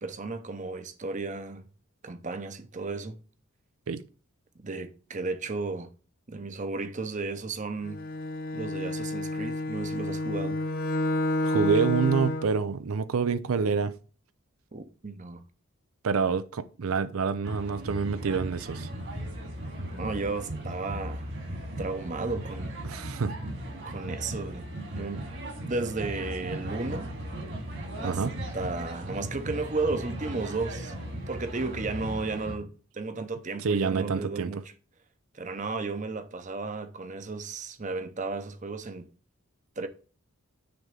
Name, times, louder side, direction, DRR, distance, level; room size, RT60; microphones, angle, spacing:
voice 1, 0.0-1.7 2.0-3.2 4.6-5.9 6.3-8.0 8.5-10.6 14.7-15.4 19.9-21.3 21.8-22.8 23.9-24.7 25.0-25.3 25.6-27.1 28.0-28.2 28.5-30.9 31.3-32.7 32.9-34.6 35.3-39.1 39.8-39.9, right 3 dB, 35° right, 0.8 m, -34 dB
Bowed string instrument, 7.8-12.6, left 2 dB, 40° left, 0.6 m, -30 dB
voice 2, 11.4-13.9 16.0-18.9 22.8-23.3 28.0-28.4 33.6-34.5, right 5 dB, 80° right, 0.5 m, -27 dB
sound 1, 17.4-32.6, right 1 dB, 55° right, 2.3 m, -37 dB
9.6 x 3.6 x 6.7 m
head